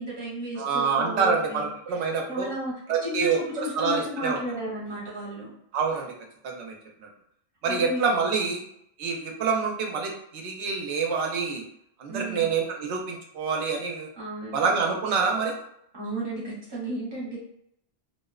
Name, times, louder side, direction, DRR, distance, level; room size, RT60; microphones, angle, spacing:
voice 1, 0.0-1.6 2.3-2.7 3.0-5.5 7.6-8.0 12.1-12.4 14.2-14.6 15.9-17.4, right 1 dB, 25° right, -5 dB, 0.8 m, -33 dB
voice 2, 0.6-2.5 2.9-4.4 5.7-6.1 6.4-6.7 7.0-7.1 7.6-8.6 9.0-11.6 12.0-14.1 14.5-15.5, right 5 dB, 80° right, 1 dB, 0.8 m, -26 dB
2.6 x 2.0 x 2.3 m, 0.73 s
omnidirectional pair, 1.1 m